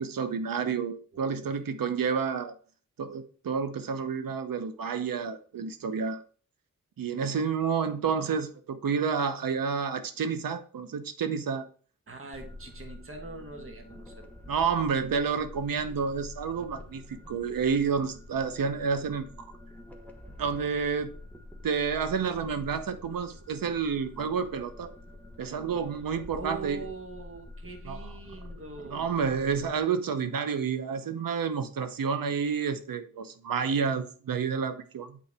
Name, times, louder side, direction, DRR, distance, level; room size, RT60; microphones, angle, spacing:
voice 1, 0.0-2.5 3.0-6.2 7.0-11.7 14.5-19.5 20.4-21.1 21.6-24.9 25.4-26.9 27.9-28.0 28.8-35.2, right 6 dB, 80° right, 0.8 m, -30 dB
voice 2, 1.1-1.6 12.1-14.3 26.3-29.1, right 3 dB, 40° right, 1.3 m, -43 dB
sound 1, 12.3-29.8, left 1 dB, 5° left, 1.1 m, -47 dB
8.5 x 3.9 x 3.4 m
wide cardioid pair, 85°, 33 cm